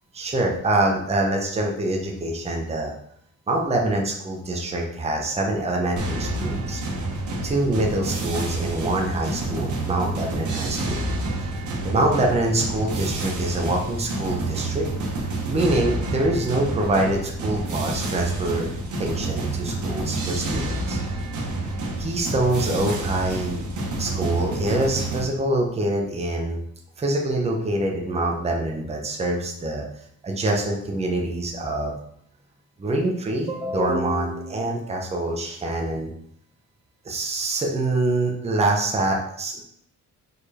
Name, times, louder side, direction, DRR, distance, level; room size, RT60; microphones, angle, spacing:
voice 1, 0.2-2.9 3.5-6.8 7.4-11.0 11.4-11.5 11.8-14.9 15.5-18.7 19.0-21.0 22.0-23.7 24.0-26.6 27.0-29.8 30.2-31.9 32.8-36.1 37.0-39.6, right 2 dB, 20° right, 0 dB, 0.9 m, -25 dB
sound 1, 6.0-25.2, right 2 dB, 75° right, 1.5 m, -28 dB
5.0 x 4.5 x 4.3 m, 0.69 s
wide cardioid pair, 155°, 30 cm